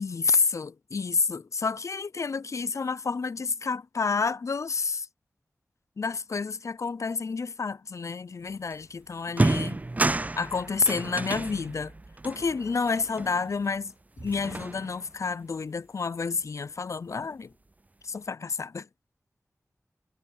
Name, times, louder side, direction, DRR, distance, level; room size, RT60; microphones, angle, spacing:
voice 1, 0.0-5.1 6.0-9.8 10.4-11.9 12.2-17.5 18.0-18.9, left 4 dB, 70° left, 0.5 m, -29 dB
sound 1, 8.7-8.8 9.3-13.8 14.2-15.2, right 2 dB, 30° right, 0.4 m, -31 dB
cardioid pair, 45°, 5 cm